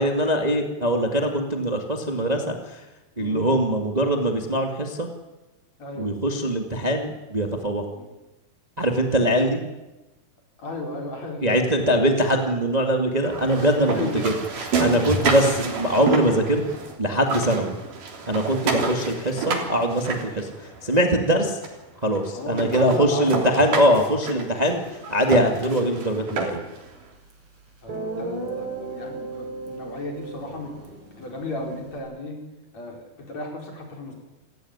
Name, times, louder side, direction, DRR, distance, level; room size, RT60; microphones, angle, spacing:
voice 1, 0.0-2.8 3.2-5.1 6.0-7.9 8.8-9.6 11.4-14.3 14.8-16.6 17.0-17.7 18.3-20.5 20.8-21.6 22.0-24.8 25.1-26.6, right 1 dB, 15° right, 3 dB, 1.8 m, -22 dB
voice 2, 5.8-6.1 7.9-8.1 10.6-11.9 13.9-14.2 15.2-15.3 22.3-23.5 27.8-30.8 31.2-32.4 32.7-34.1, left 2 dB, 55° left, 2 dB, 5.7 m, -34 dB
sound 1, 13.2-16.9 17.2-21.0 21.6-21.7 22.2-22.3 22.6-26.8, right 4 dB, 80° right, 4.9 m, -29 dB
Guitar, 27.3-27.4 27.9-32.0, right 3 dB, 40° right, 5.3 m, -35 dB
28.0 x 16.0 x 9.7 m, 1.1 s
omnidirectional pair, 3.7 m